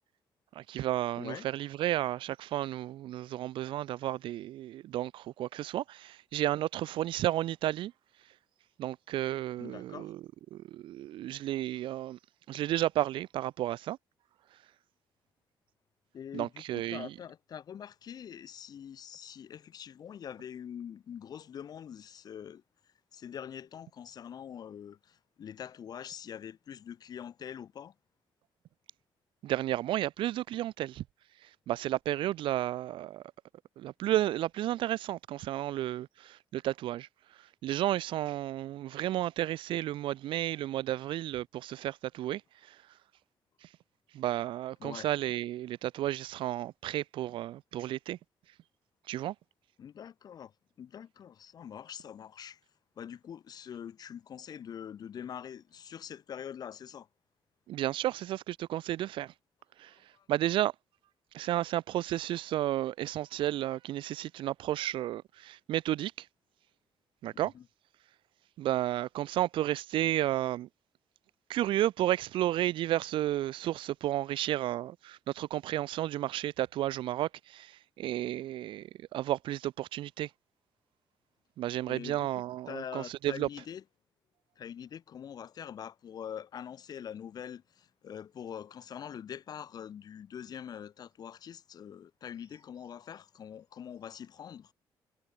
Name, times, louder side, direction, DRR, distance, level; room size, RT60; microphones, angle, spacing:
voice 1, 0.6-7.9 8.8-10.2 10.5-12.2 12.5-14.0 16.3-17.1 29.4-31.0 31.7-33.2 33.8-37.1 37.6-42.4 42.7-42.8 44.1-48.2 49.1-49.3 57.7-59.3 59.8-59.9 60.3-60.7 61.3-66.3 67.2-67.5 68.6-70.7 71.5-80.3 81.6-83.5, right 13 dB, 80° right, 0.4 m, -32 dB
voice 2, 1.2-1.5 9.6-10.1 16.1-22.6 23.1-27.9 44.8-45.1 49.8-50.5 50.8-52.6 53.0-57.1 60.1-60.3 67.5-67.6 81.9-83.8 84.6-94.7, left 8 dB, 50° left, 6.4 m, -44 dB
cardioid pair, 165°, 9 cm